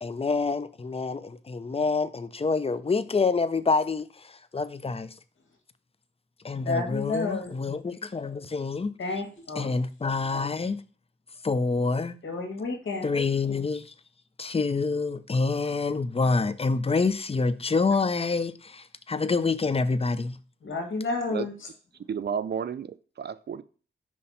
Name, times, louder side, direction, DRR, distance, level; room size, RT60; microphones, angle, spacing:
voice 1, 0.0-5.1 6.4-8.9 9.6-10.8 11.4-12.2 13.0-13.9 14.4-20.4, left 4 dB, 30° left, 0.5 m, -27 dB
voice 2, 6.5-7.5 9.0-9.7 12.2-13.1 20.6-21.5, left 3 dB, 85° left, 1.8 m, -30 dB
voice 3, 22.1-23.6, right 7 dB, 60° right, 0.5 m, -32 dB
5.6 x 3.2 x 5.5 m
cardioid pair, 45°, 20 cm